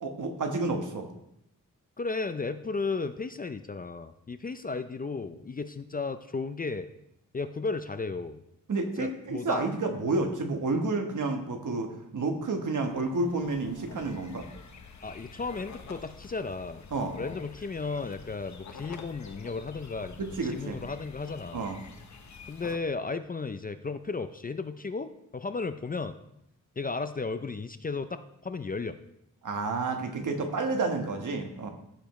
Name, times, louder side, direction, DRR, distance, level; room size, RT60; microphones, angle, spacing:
voice 1, 0.0-1.1 8.7-14.5 16.9-17.1 20.2-20.8 21.5-21.8 29.4-31.7, right 3 dB, 65° right, 5 dB, 1.3 m, -30 dB
voice 2, 2.0-6.9 7.3-8.4 9.0-9.6 15.0-16.8 17.2-21.6 22.5-26.2 26.8-29.0, left 4 dB, 25° left, 10 dB, 0.4 m, -34 dB
sound 1, 12.8-22.8, left 5 dB, 60° left, 1.0 m, -48 dB
15.0 x 6.9 x 3.1 m, 0.79 s
wide cardioid pair, 125°, 32 cm